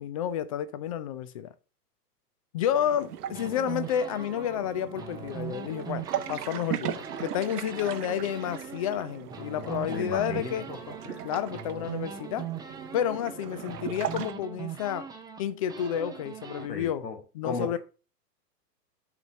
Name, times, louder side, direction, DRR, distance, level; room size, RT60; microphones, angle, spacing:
voice 1, 0.0-1.5 2.5-10.7 11.2-12.5 12.9-15.1 15.4-17.1 17.3-17.8, left 9 dB, 25° left, 0.3 m, -30 dB
sound 1, 2.7-14.3, right 10 dB, 65° right, 1.0 m, -39 dB
sound 2, 3.3-6.7 7.0-16.7, right 7 dB, 10° right, 0.8 m, -41 dB
voice 2, 9.6-10.8 11.0-11.3 16.7-17.2 17.4-17.8, left 4 dB, 85° left, 1.6 m, -35 dB
7.0 x 4.1 x 6.2 m
figure-of-eight pair, 105°, 49 cm